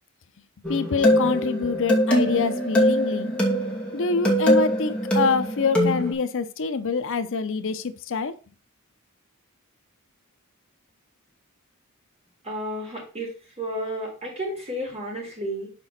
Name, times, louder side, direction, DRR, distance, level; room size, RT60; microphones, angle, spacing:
sound 1, 0.6-6.1, equal, 5° left, 2.6 m, -22 dB
voice 1, 0.7-3.3 3.9-8.3, left 4 dB, 65° left, 0.6 m, -26 dB
voice 2, 12.4-15.7, equal, 30° right, 3.6 m, -32 dB
6.0 x 4.9 x 5.7 m
head